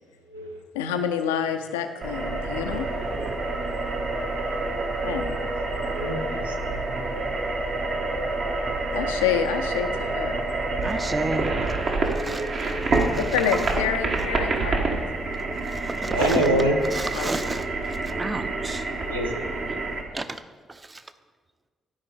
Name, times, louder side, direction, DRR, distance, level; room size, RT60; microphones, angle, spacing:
voice 1, 0.7-2.9 5.0-5.4 8.9-10.4 13.3-15.3 16.8-17.3, left 8 dB, 75° left, 7 dB, 0.5 m, -28 dB
sound 1, 2.0-20.0, right 2 dB, 55° right, 1.3 m, -27 dB
voice 2, 5.7-7.4 8.0-8.3 16.0-16.8 19.1-19.4, right 1 dB, 90° right, 1 dB, 0.7 m, -27 dB
voice 3, 10.8-11.5 12.1-12.4 13.1-13.2 15.8-16.5 16.9-17.7 18.2-18.8 19.7-19.8 20.1-20.4 20.9-21.0, right 2 dB, 25° right, 10 dB, 0.7 m, -31 dB
12.0 x 5.1 x 5.0 m, 1.5 s
figure-of-eight pair, 40°, 0 cm